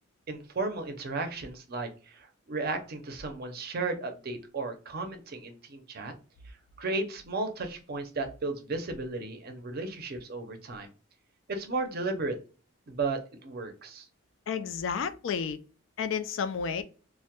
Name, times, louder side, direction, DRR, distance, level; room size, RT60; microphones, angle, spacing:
voice 1, 0.3-6.1 6.8-10.9 11.5-12.4 12.9-14.1, right 3 dB, 50° right, 0.5 m, -34 dB
voice 2, 14.5-15.6 16.0-16.8, left 6 dB, 65° left, 0.3 m, -31 dB
2.2 x 2.0 x 2.8 m
head